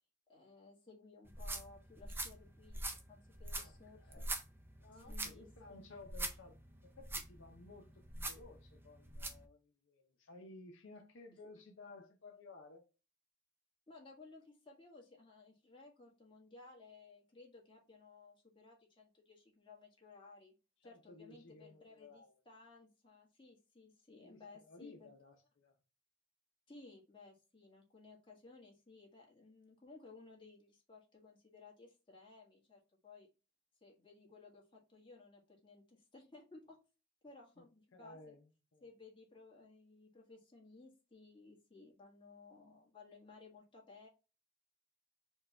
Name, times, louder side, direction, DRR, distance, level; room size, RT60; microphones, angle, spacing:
voice 1, 0.3-4.2 4.9-5.8 13.9-20.5 20.8-25.1 26.7-33.3 33.8-36.8 37.2-38.4 38.8-44.1, left 3 dB, 25° left, 1.4 m, -59 dB
sound 1, 1.3-9.5, right 2 dB, 10° right, 0.4 m, -44 dB
voice 2, 3.5-4.3 4.8-12.8 20.8-22.3 24.2-25.7 37.6-37.7 37.9-38.8, left 3 dB, 70° left, 0.6 m, -57 dB
4.5 x 2.2 x 4.1 m
head